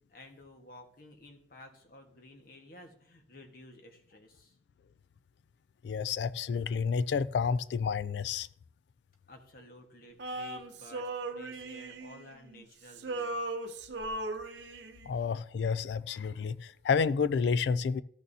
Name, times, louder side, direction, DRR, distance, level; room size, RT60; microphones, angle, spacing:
voice 1, 0.0-4.6 9.3-13.5 15.1-15.3, left 1 dB, 50° left, 1.4 m, -53 dB
voice 2, 5.8-8.5 15.1-18.0, left 5 dB, 65° left, 0.3 m, -30 dB
Male singing, 10.2-12.6 12.9-15.1, right 2 dB, 70° right, 0.7 m, -38 dB
14.0 x 6.3 x 2.7 m
head